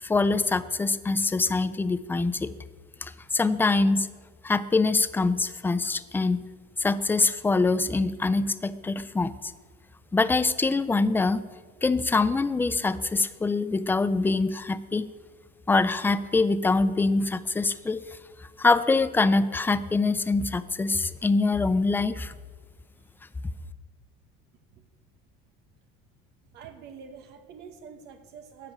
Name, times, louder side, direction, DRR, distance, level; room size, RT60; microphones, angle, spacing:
voice 1, 0.0-2.5 3.0-4.1 4.4-6.5 6.8-9.3 10.1-11.4 11.8-15.1 15.7-18.0 18.6-22.3, left 3 dB, 10° left, 14 dB, 0.4 m, -24 dB
voice 2, 26.5-28.7, right 6 dB, 55° right, 6 dB, 1.1 m, -46 dB
13.0 x 5.0 x 8.9 m, 1.5 s
cardioid pair, 130°, 20 cm